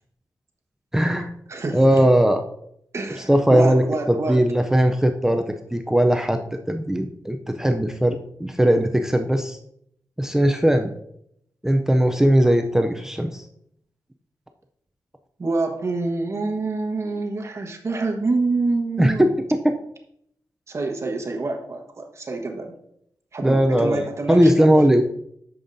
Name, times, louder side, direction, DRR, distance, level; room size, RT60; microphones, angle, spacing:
voice 1, 0.9-1.3 1.7-2.4 3.3-3.8 4.1-9.6 10.2-10.9 11.6-13.4 19.0-19.7 23.4-25.0, equal, 5° right, 5 dB, 0.4 m, -19 dB
voice 2, 1.5-2.0 2.9-4.4 15.4-19.3 20.7-22.7 23.3-24.7, right 3 dB, 40° right, 2 dB, 1.2 m, -26 dB
8.7 x 7.0 x 2.6 m, 0.72 s
wide cardioid pair, 135°, 7 cm